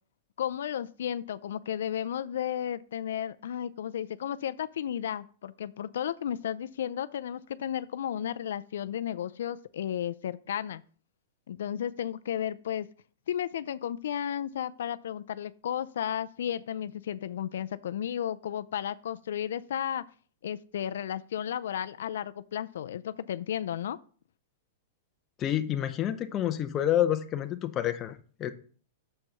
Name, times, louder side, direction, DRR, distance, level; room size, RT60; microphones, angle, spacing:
voice 1, 0.4-10.8 11.5-12.9 13.3-20.0 20.4-24.0, left 10 dB, 80° left, 14 dB, 0.3 m, -33 dB
voice 2, 25.4-28.5, left 11 dB, 25° left, 8 dB, 0.6 m, -28 dB
6.4 x 4.6 x 5.5 m, 0.43 s
supercardioid pair, 160°, 0 cm